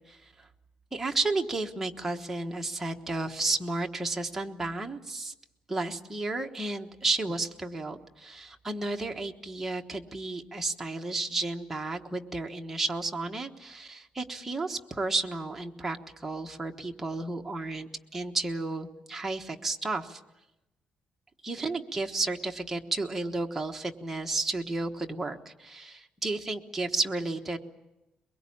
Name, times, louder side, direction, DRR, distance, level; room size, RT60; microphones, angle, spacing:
voice 1, 0.1-0.5 0.9-5.3 5.7-20.2 21.4-27.6, right 2 dB, 10° right, 2 dB, 1.2 m, -32 dB
22.5 x 22.5 x 8.7 m, 0.96 s
cardioid pair, 170°, 2 cm